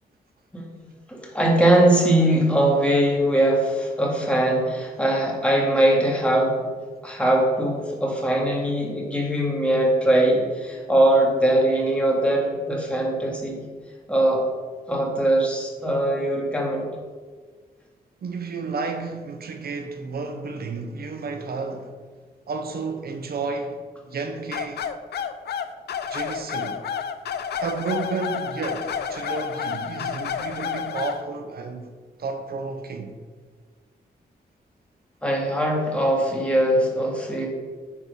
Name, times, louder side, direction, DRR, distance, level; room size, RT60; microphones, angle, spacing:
voice 1, 0.5-6.6 7.0-13.6 14.1-14.4 14.9-16.9 35.2-37.5, right 1 dB, 5° left, 2.3 m, -21 dB
voice 2, 18.2-22.0 22.5-24.9 26.1-26.8 27.6-31.9 32.2-33.2, right 4 dB, 70° right, 0.8 m, -32 dB
sound 1, 24.5-31.2, left 7 dB, 85° left, 0.5 m, -30 dB
9.8 x 4.6 x 5.4 m
wide cardioid pair, 105°, 17 cm